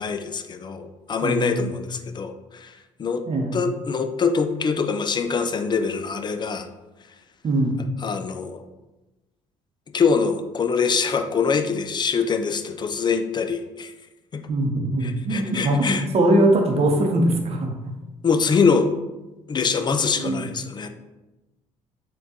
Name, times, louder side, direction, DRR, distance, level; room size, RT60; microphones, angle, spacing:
voice 1, 0.0-3.2 3.5-6.7 8.0-8.6 9.9-13.9 14.3-14.5 15.0-16.1 18.2-18.9 19.5-20.9, left 5 dB, 30° left, 8 dB, 0.3 m, -24 dB
voice 2, 1.2-1.7 3.3-3.6 7.4-7.7 14.5-18.0 20.1-20.4, right 1 dB, 40° right, 2 dB, 0.7 m, -22 dB
4.3 x 2.3 x 2.8 m, 1.1 s
hypercardioid pair, 55°, 15 cm